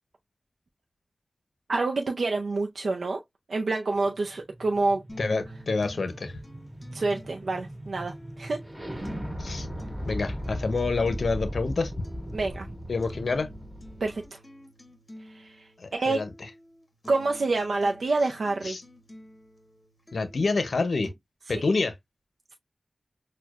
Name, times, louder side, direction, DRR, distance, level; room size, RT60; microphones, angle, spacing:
voice 1, 1.7-3.2 3.5-5.0 6.9-8.6 12.3-12.7 14.0-14.4 15.2-16.2 17.1-18.8 21.5-21.6, right 3 dB, 90° right, 0.4 m, -27 dB
sound 1, 4.1-14.2, equal, 15° right, 1.9 m, -38 dB
sound 2, 5.1-21.1, equal, 35° left, 1.0 m, -50 dB
voice 2, 5.2-6.4 9.4-9.7 10.1-11.9 12.9-13.5 15.8-16.3 18.6-18.8 20.1-21.1 21.5-21.9, left 3 dB, 85° left, 0.6 m, -27 dB
6.2 x 2.2 x 2.4 m
wide cardioid pair, 65°, 0 cm